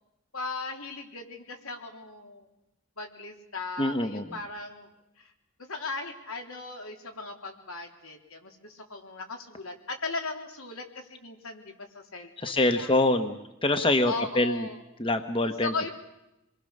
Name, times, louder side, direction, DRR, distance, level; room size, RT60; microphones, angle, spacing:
voice 1, 0.3-2.5 3.0-4.9 5.2-5.3 5.6-12.9 14.0-14.8 15.6-15.9, left 3 dB, 75° left, 3 dB, 3.6 m, -37 dB
voice 2, 3.8-4.3 12.4-14.7 15.0-15.9, left 2 dB, 25° left, 8 dB, 1.1 m, -25 dB
27.5 x 22.0 x 6.6 m, 0.91 s
head